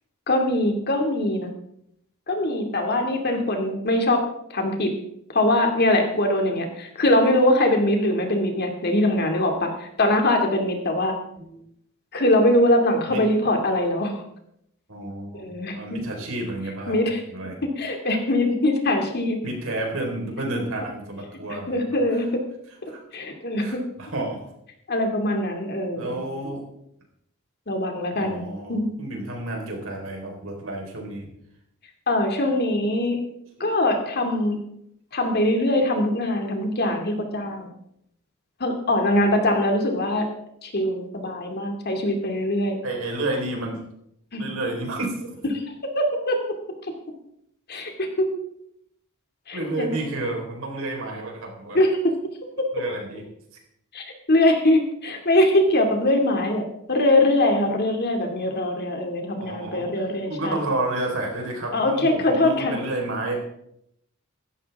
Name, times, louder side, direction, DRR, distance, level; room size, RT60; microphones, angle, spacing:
voice 1, 0.3-1.5 2.3-4.2 4.5-4.9 5.3-11.2 12.1-14.1 15.3-16.0 16.9-17.2 17.8-19.4 20.5-20.6 21.5-22.4 22.8-23.8 24.9-26.2 27.7-28.4 28.7-29.0 32.1-33.2 33.6-34.6 35.1-37.7 38.6-40.3 40.6-42.8 44.3-44.5 45.5-45.6 45.9-46.4 47.7-48.4 49.5-50.0 51.7-52.1 52.6-52.7 53.9-56.6 56.9-60.7 61.7-62.7, left 1 dB, 50° left, 3 dB, 2.4 m, -22 dB
voice 2, 14.9-17.0 17.3-17.6 19.4-21.9 22.9-23.0 23.6-24.5 26.0-26.6 28.1-31.3 33.6-33.7 39.1-39.2 42.8-43.8 44.4-45.5 49.5-51.8 52.7-53.2 59.4-59.9 60.3-63.5, right 2 dB, 70° right, 1 dB, 4.3 m, -30 dB
16.0 x 13.5 x 3.6 m, 0.76 s
head